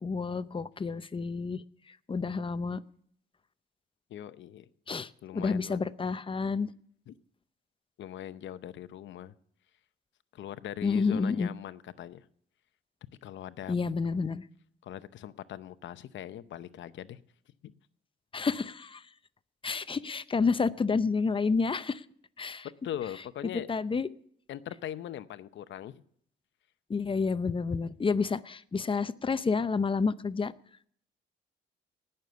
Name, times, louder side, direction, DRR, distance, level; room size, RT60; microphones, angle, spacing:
voice 1, 0.0-1.6 2.1-2.8 4.9-6.7 10.8-11.5 13.7-14.4 18.3-19.0 19.6-22.0 22.4-22.7 23.7-24.1 26.9-30.5, left 4 dB, 25° left, 15 dB, 0.6 m, -29 dB
voice 2, 4.1-4.7 5.2-5.8 7.1-7.2 8.0-9.3 10.3-12.3 13.2-13.8 14.8-17.2 17.6-17.7 22.8-23.7 24.5-26.0, left 11 dB, 70° left, 13 dB, 0.7 m, -41 dB
19.0 x 6.7 x 6.8 m, 0.63 s
cardioid pair, 90°, 20 cm